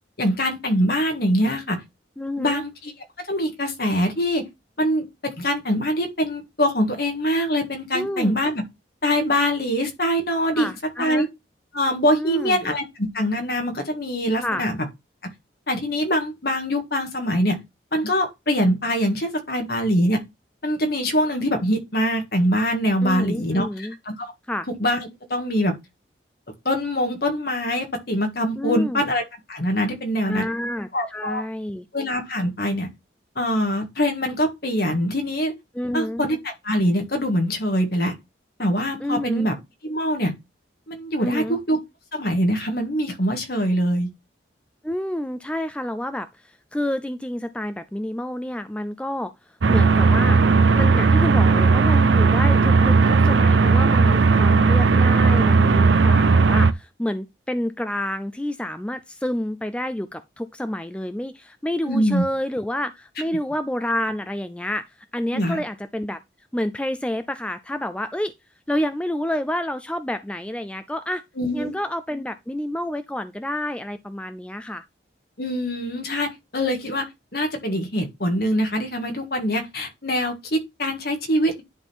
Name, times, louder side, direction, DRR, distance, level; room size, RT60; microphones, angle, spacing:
voice 1, 0.2-1.8 2.4-2.9 3.2-4.4 4.8-5.1 5.4-8.6 9.0-10.7 11.0-11.3 11.7-14.8 15.7-17.6 17.9-20.2 20.6-24.3 24.7-25.0 25.3-25.8 26.7-29.2 29.5-30.5 30.9-31.4 31.9-32.9 33.4-35.5 35.9-38.1 38.6-39.5 39.8-40.3 40.9-41.8 42.1-44.1 61.9-62.2 65.3-65.6 71.4-71.7 75.4-77.0 77.3-81.6, equal, 55° left, 1.8 m, -23 dB
voice 2, 2.2-2.6 7.9-8.4 10.5-11.3 12.1-12.6 14.4-14.7 23.0-23.9 24.5-24.7 28.6-29.0 30.3-31.9 35.7-36.3 39.0-39.5 41.2-41.6 44.8-50.4 50.7-64.8 65.1-66.2 66.5-68.3 68.7-71.2 71.5-74.8, left 1 dB, 5° left, 0.4 m, -29 dB
sound 1, 49.6-56.7, right 4 dB, 80° right, 0.6 m, -16 dB
10.5 x 3.7 x 4.4 m
head